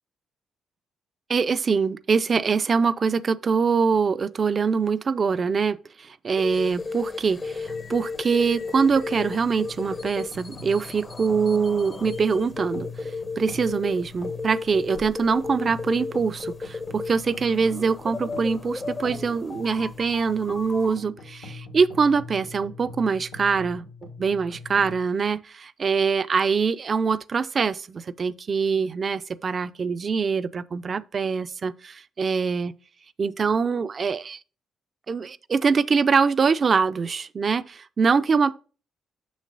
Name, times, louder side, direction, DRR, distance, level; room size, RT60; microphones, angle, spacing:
voice 1, 1.3-13.1 13.4-23.9 24.2-32.7 33.2-34.4 35.1-38.5, right 5 dB, 45° right, 0.4 m, -24 dB
sound 1, 6.4-21.0, left 4 dB, 35° left, 0.7 m, -35 dB
sound 2, 7.4-25.0, left 4 dB, 80° left, 1.5 m, -43 dB
6.5 x 6.2 x 2.6 m
hypercardioid pair, 50°, 0 cm